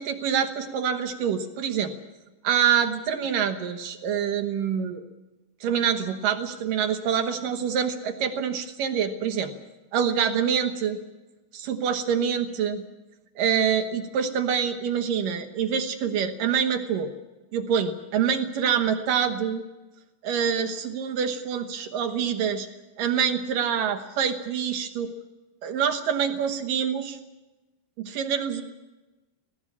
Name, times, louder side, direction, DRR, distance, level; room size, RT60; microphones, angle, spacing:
voice 1, 0.0-1.9 2.4-5.0 5.6-9.5 9.9-11.0 11.5-12.8 13.4-17.1 17.5-19.6 20.2-22.7 23.0-25.1 25.6-27.2 28.0-28.6, right 7 dB, 65° right, 8 dB, 2.3 m, -26 dB
18.5 x 18.5 x 8.5 m, 1.1 s
omnidirectional pair, 5.0 m